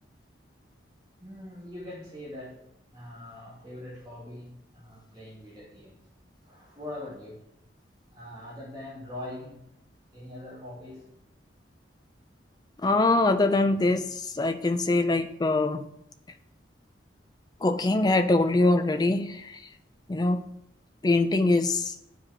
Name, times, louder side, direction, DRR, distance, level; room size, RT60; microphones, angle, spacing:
voice 1, 1.2-2.6 2.9-6.0 6.4-7.4 8.1-9.6 10.1-11.1, left 1 dB, 20° right, -8 dB, 2.3 m, -42 dB
voice 2, 12.8-15.8 17.6-19.6 20.1-20.4 21.0-22.0, left 2 dB, 20° left, 8 dB, 0.3 m, -23 dB
12.0 x 4.9 x 2.9 m, 0.81 s
head